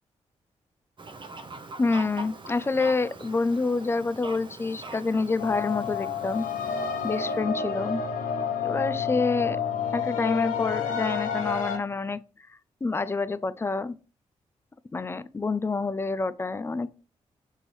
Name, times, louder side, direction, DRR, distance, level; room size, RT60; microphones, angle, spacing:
Fowl, 1.0-7.4, right 3 dB, 40° right, 0.8 m, -43 dB
voice 1, 1.8-6.5 7.0-8.0 8.6-9.6 9.9-12.2 12.8-13.9 14.9-16.9, left 3 dB, 20° left, 0.4 m, -27 dB
sound 1, 5.4-11.8, left 7 dB, 85° left, 0.4 m, -29 dB
6.0 x 2.7 x 3.0 m
supercardioid pair, 45°, 13 cm